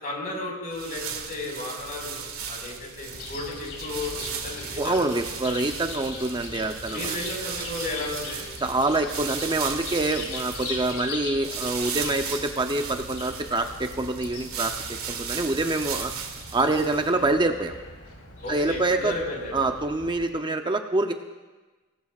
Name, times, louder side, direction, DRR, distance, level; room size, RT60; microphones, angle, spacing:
voice 1, 0.0-1.0 1.3-5.1 6.9-8.8 17.1-17.3 18.4-19.6, left 2 dB, 40° left, -2 dB, 4.8 m, -34 dB
sound 1, 0.7-17.2, right 7 dB, 70° right, 1.9 m, -36 dB
Chirp tweet, 3.1-20.3, left 3 dB, 70° left, 4.0 m, -40 dB
voice 2, 4.8-7.1 8.6-16.1 16.5-17.7 18.5-19.1 19.5-21.1, right 2 dB, 20° right, 6 dB, 0.6 m, -26 dB
25.0 x 18.5 x 2.4 m, 1.2 s
head